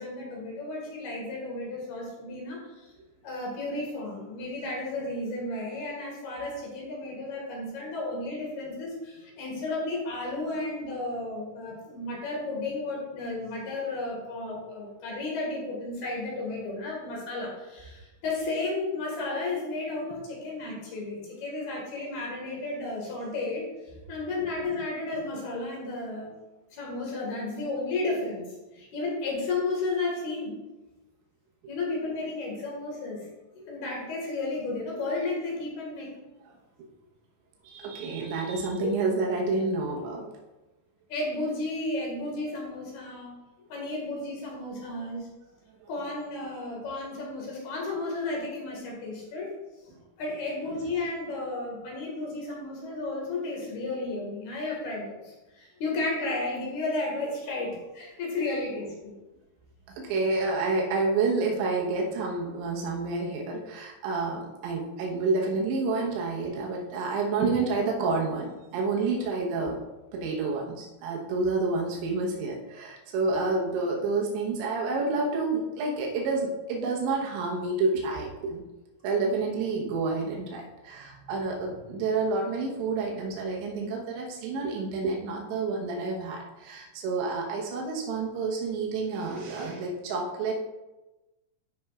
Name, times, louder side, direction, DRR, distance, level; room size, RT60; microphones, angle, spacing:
voice 1, 0.0-2.9 3.2-23.7 24.1-26.3 26.7-30.5 31.7-33.3 33.5-36.1 38.8-38.9 41.1-43.4 43.6-45.3 45.9-49.5 50.2-59.1, left 2 dB, 65° left, -2 dB, 3.4 m, -33 dB
voice 2, 37.6-40.3 45.8-45.9 59.9-69.8 70.1-78.7 79.0-90.5, right 3 dB, 90° right, -1 dB, 3.4 m, -29 dB
12.5 x 5.5 x 2.4 m, 1.1 s
omnidirectional pair, 5.1 m